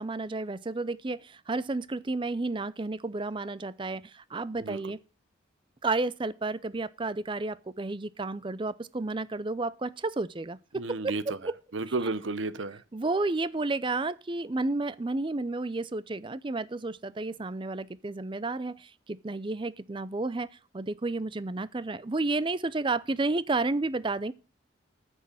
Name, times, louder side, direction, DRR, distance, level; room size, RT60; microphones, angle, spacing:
voice 1, 0.0-5.0 5.8-11.5 11.9-12.1 12.9-24.3, right 3 dB, 25° right, 0.5 m, -31 dB
voice 2, 10.7-11.2 11.7-12.8, right 3 dB, 90° right, 0.9 m, -32 dB
9.7 x 6.3 x 7.4 m
head